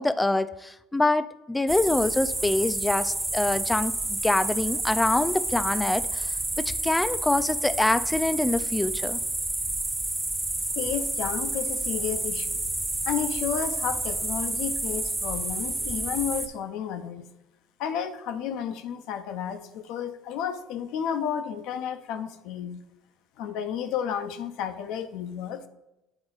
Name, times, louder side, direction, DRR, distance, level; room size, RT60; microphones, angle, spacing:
voice 1, 0.0-9.2, left 2 dB, 10° left, 13 dB, 0.4 m, -25 dB
sound 1, 1.7-16.5, right 2 dB, 15° right, 0.9 m, -29 dB
voice 2, 10.8-12.6 13.1-17.3 17.8-22.8 23.4-25.6, left 8 dB, 70° left, 8 dB, 0.5 m, -32 dB
8.9 x 3.9 x 3.8 m, 0.94 s
hypercardioid pair, 75°, 0 cm